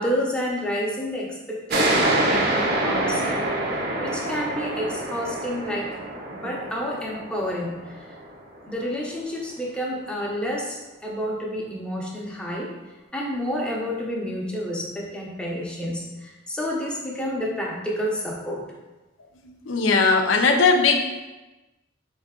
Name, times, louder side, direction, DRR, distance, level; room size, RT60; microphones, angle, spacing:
voice 1, 0.0-3.5 4.0-6.0 6.3-8.1 8.7-12.7 13.1-18.7, equal, 5° left, -3 dB, 0.7 m, -29 dB
sound 1, 1.7-8.9, right 1 dB, 55° right, 0.7 m, -26 dB
voice 2, 19.7-21.1, left 4 dB, 85° left, 4 dB, 0.5 m, -18 dB
3.7 x 3.2 x 3.6 m, 1.1 s
head